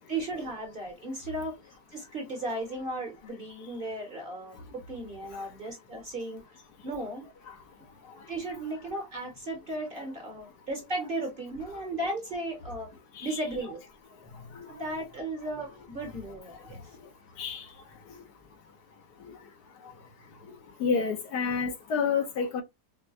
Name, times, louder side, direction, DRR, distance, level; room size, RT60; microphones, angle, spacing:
voice 1, 0.1-4.6 4.9-6.4 6.8-7.3 8.3-12.9 13.2-13.8 14.7-16.8, right 2 dB, 40° right, 0.9 m, -35 dB
voice 2, 20.8-22.6, left 5 dB, 75° left, 1.4 m, -29 dB
4.6 x 2.1 x 2.4 m
omnidirectional pair, 1.8 m